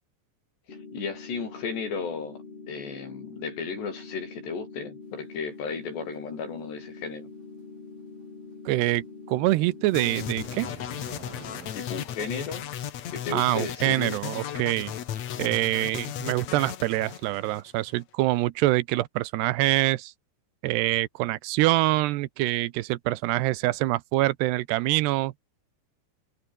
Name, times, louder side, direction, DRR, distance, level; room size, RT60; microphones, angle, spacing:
voice 1, 0.7-2.4 2.7-7.3 11.7-12.7 13.1-14.2, left 5 dB, 85° left, 8.6 m, -34 dB
sound 1, 0.7-10.7, left 4 dB, 35° left, 5.8 m, -44 dB
voice 2, 8.7-10.7 13.3-14.9 15.4-20.1 20.6-25.3, right 18 dB, 85° right, 2.9 m, -25 dB
sound 2, 9.8-11.7, right 4 dB, 55° right, 8.2 m, -45 dB
sound 3, 9.9-18.0, left 10 dB, 55° left, 2.2 m, -36 dB
omnidirectional pair, 4.8 m